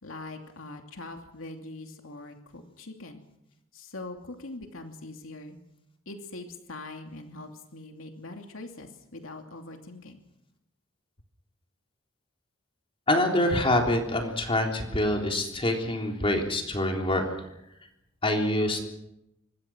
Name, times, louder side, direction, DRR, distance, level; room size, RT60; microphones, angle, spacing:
voice 1, 0.0-3.2 3.7-5.6 6.1-10.2, left 2 dB, 85° left, 4 dB, 2.8 m, -42 dB
voice 2, 13.1-17.3 18.2-18.9, left 1 dB, 25° left, 2 dB, 3.6 m, -25 dB
25.5 x 22.0 x 6.2 m, 0.85 s
head